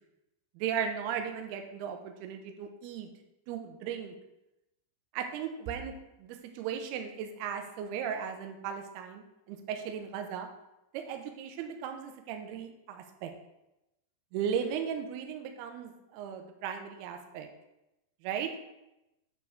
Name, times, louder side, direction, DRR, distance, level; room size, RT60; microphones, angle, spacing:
voice 1, 0.6-3.1 3.5-4.1 5.1-5.9 6.2-10.5 10.9-13.3 14.3-17.5 18.2-18.5, right 8 dB, 80° right, 5 dB, 2.4 m, -36 dB
9.5 x 4.6 x 3.5 m, 0.92 s
omnidirectional pair, 5.3 m